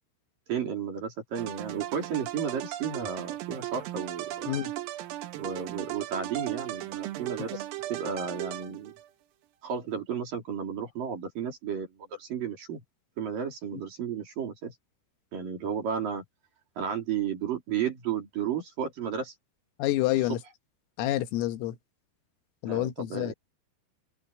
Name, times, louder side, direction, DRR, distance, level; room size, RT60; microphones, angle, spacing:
voice 1, 0.5-4.6 5.4-8.9 9.6-12.8 13.2-14.7 15.3-16.2 16.8-19.3 22.7-23.3, right 7 dB, 45° right, 4.5 m, -33 dB
sound 1, 1.4-9.1, right 14 dB, 85° right, 4.2 m, -37 dB
voice 2, 19.8-20.4 21.0-21.8 22.6-23.3, left 15 dB, 85° left, 4.1 m, -28 dB
open air
omnidirectional pair, 5.8 m